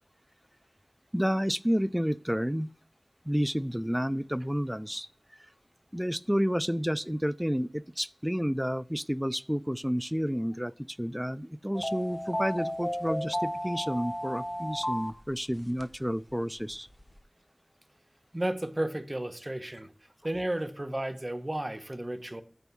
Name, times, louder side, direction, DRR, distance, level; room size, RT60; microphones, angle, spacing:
voice 1, 1.1-2.7 3.3-5.1 5.9-16.9, equal, 5° right, 0.4 m, -30 dB
sound 1, 11.7-16.0 16.3-16.4 16.7-17.1, equal, 25° left, 1.4 m, -33 dB
voice 2, 18.3-19.9 20.2-22.4, right 1 dB, 30° right, 1.0 m, -33 dB
9.0 x 3.5 x 6.1 m
wide cardioid pair, 50°, 0 cm